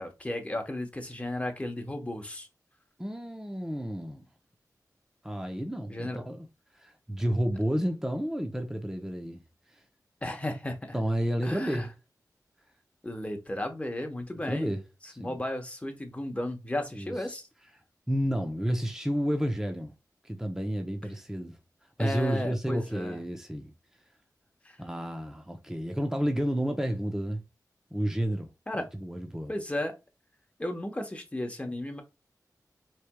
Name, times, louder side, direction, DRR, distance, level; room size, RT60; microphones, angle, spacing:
voice 1, 0.0-2.5 5.9-6.4 10.2-11.0 11.4-11.9 13.0-14.7 15.2-17.5 22.0-23.2 24.6-24.8 28.7-28.9 29.5-29.9 30.6-32.0, left 1 dB, 20° left, 1.0 m, -34 dB
voice 2, 3.0-4.2 5.2-6.5 6.8-9.4 10.9-11.9 14.5-14.8 15.2-15.4 16.9-17.1 18.1-19.9 20.2-21.6 22.0-23.7 24.8-27.4 27.9-29.5, equal, 5° right, 0.7 m, -31 dB
4.4 x 3.3 x 2.3 m
cardioid pair, 55°, 7 cm